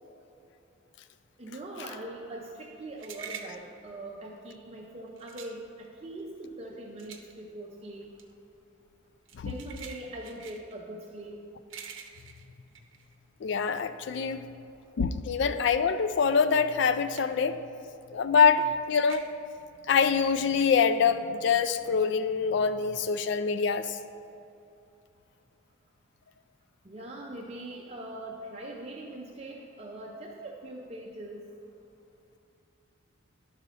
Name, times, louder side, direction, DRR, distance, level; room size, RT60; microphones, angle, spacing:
voice 1, 1.4-8.1 9.4-11.4 26.8-31.5, right 1 dB, 30° right, -1 dB, 0.5 m, -42 dB
sound 1, 2.5-13.8 14.2-17.6 17.9-20.7, right 6 dB, 65° right, 0.7 m, -48 dB
voice 2, 13.4-14.4 15.0-17.6 18.1-19.2 19.9-24.0, left 5 dB, 55° left, 11 dB, 0.3 m, -25 dB
11.5 x 4.0 x 5.5 m, 2.7 s
head